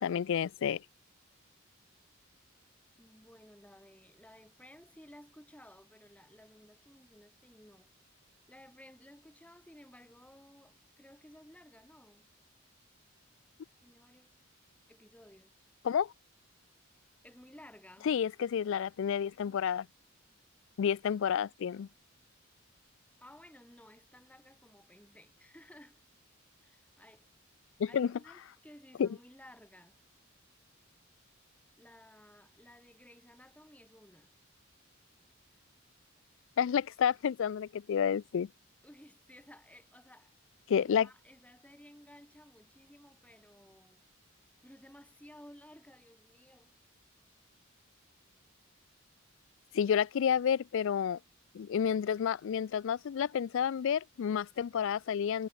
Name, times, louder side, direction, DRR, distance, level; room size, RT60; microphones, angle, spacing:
voice 1, 0.0-0.8 15.8-16.1 18.1-19.9 20.8-21.9 27.8-28.1 29.0-29.1 36.6-38.5 40.7-41.1 49.7-51.2 51.5-55.5, left 8 dB, 65° left, 0.3 m, -30 dB
voice 2, 3.0-7.9 8.5-12.3 13.8-14.4 14.9-15.6 17.2-18.1 23.2-26.0 26.6-27.2 27.9-30.0 31.8-34.3 38.8-40.3 40.7-44.0 44.6-46.7, left 1 dB, 5° left, 5.7 m, -56 dB
head